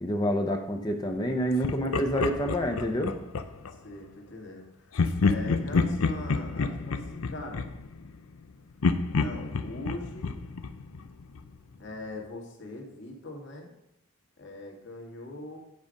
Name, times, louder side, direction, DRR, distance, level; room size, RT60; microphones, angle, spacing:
voice 1, 0.0-3.1, equal, 20° left, 3 dB, 0.7 m, -28 dB
Laughter, 1.6-3.8 4.9-8.4 8.8-11.6, left 4 dB, 85° left, 0.6 m, -29 dB
voice 2, 3.8-7.7 9.2-10.4 11.8-13.7 14.4-15.6, left 2 dB, 60° left, 0 dB, 1.9 m, -41 dB
9.6 x 5.0 x 5.2 m, 0.82 s
head